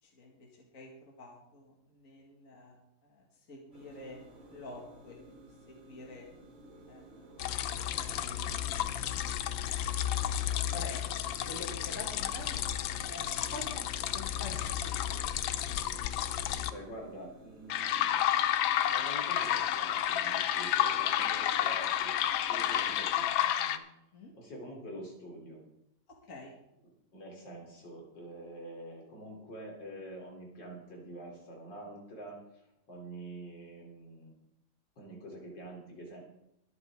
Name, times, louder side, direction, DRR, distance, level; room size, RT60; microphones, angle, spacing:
voice 1, 0.0-4.2 4.5-5.4 5.7-6.3 6.9-7.0 7.9-9.2 9.8-11.0 11.5-12.6 13.1-13.9 14.1-15.0 24.1-24.3 26.1-26.5, left 2 dB, 45° left, -2 dB, 2.4 m, -48 dB
sound 1, 3.7-23.3, right 2 dB, 85° right, 3.2 m, -55 dB
sound 2, 7.4-16.7 17.7-23.8, left 11 dB, 90° left, 1.5 m, -31 dB
voice 2, 16.7-18.6 18.9-22.2 22.5-23.8 24.3-25.6 27.1-34.3 35.0-36.2, right 1 dB, 70° left, -1 dB, 4.2 m, -46 dB
22.5 x 8.2 x 3.7 m, 0.81 s
omnidirectional pair, 2.0 m